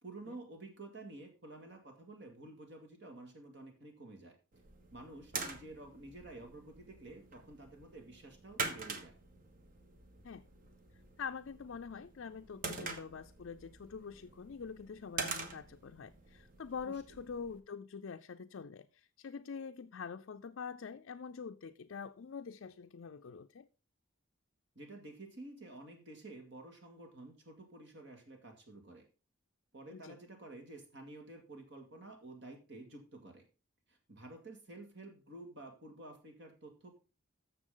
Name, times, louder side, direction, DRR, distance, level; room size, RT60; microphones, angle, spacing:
voice 1, 0.0-4.4 4.9-9.1 16.8-17.0 24.8-29.0 29.7-33.4 33.9-37.0, right 2 dB, 55° right, 2.3 m, -51 dB
sound 1, 4.5-17.6, right 3 dB, 40° right, 1.2 m, -45 dB
voice 2, 11.2-23.7 29.9-30.2, left 6 dB, 65° left, 0.4 m, -45 dB
12.5 x 6.9 x 3.8 m
head